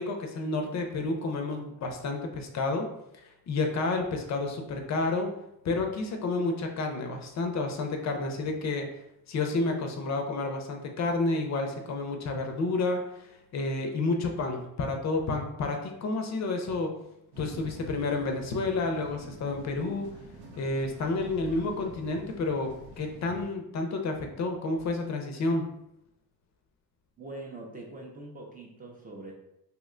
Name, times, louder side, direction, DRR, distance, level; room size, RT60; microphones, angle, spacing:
voice 1, 0.0-2.9 3.5-5.3 5.6-8.9 9.3-16.9 17.4-20.1 20.6-25.6, left 3 dB, 45° left, 3 dB, 0.5 m, -30 dB
sound 1, 17.3-23.5, right 1 dB, 85° right, 0.8 m, -47 dB
voice 2, 27.2-29.3, right 2 dB, 25° right, -1 dB, 0.4 m, -43 dB
2.8 x 2.1 x 3.6 m, 0.84 s
cardioid pair, 145°, 37 cm